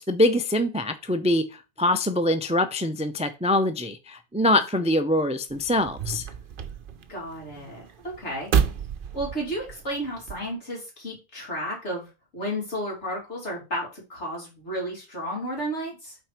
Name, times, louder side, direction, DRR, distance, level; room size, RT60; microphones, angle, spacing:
voice 1, 0.0-6.2, left 1 dB, 10° right, 0.3 m, -24 dB
sound 1, 5.5-10.5, right 7 dB, 55° right, 0.8 m, -30 dB
voice 2, 7.1-8.5 9.1-16.2, equal, 80° left, 3.4 m, -33 dB
6.0 x 4.4 x 5.0 m
omnidirectional pair, 1.2 m